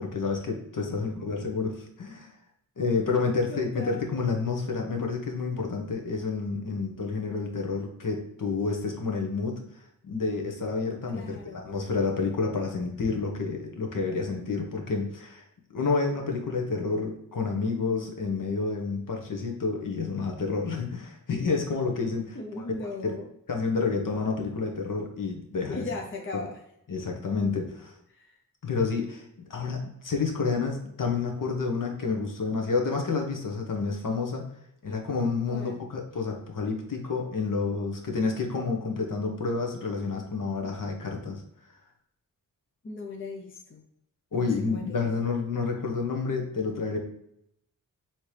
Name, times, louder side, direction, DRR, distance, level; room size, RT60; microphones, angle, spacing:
voice 1, 0.0-2.3 2.8-9.6 10.0-11.4 11.6-15.4 15.7-22.6 23.0-23.1 23.5-25.9 26.3-26.4 26.9-27.9 28.6-34.4 34.8-41.4 44.3-47.0, left 4 dB, 65° left, 2 dB, 0.9 m, -29 dB
voice 2, 0.8-1.2 3.5-4.0 11.1-11.7 22.3-23.3 25.7-26.6 28.2-28.3 35.5-35.8 42.8-43.8 44.3-45.0, left 3 dB, 35° left, 2 dB, 0.6 m, -38 dB
4.4 x 2.9 x 3.2 m, 0.76 s
cardioid pair, 60°, 35 cm